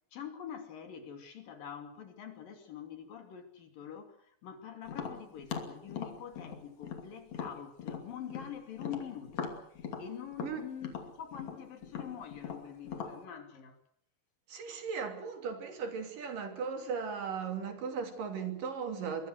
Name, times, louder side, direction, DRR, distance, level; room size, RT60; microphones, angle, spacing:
voice 1, 0.1-13.8, left 9 dB, 75° left, 4.5 m, -45 dB
Tap, 4.9-8.5 8.8-13.2, left 6 dB, 55° left, 3.9 m, -40 dB
voice 2, 14.5-19.3, right 6 dB, 70° right, 4.6 m, -37 dB
25.0 x 23.0 x 6.5 m
omnidirectional pair, 4.0 m